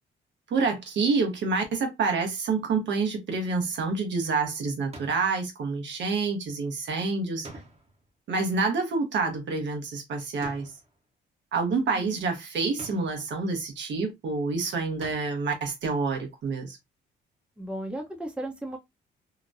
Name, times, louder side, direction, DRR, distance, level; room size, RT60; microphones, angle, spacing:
voice 1, 0.5-7.5 8.3-10.7 11.5-16.8, right 4 dB, 65° right, 1.0 m, -28 dB
sound 1, 4.9-5.4 7.4-8.1 10.4-11.0 12.8-13.3 15.0-15.5, right 2 dB, 30° right, 1.0 m, -45 dB
voice 2, 11.7-12.2 17.6-18.8, right 1 dB, 5° right, 0.8 m, -36 dB
2.9 x 2.1 x 2.6 m
cardioid pair, 90°, 20 cm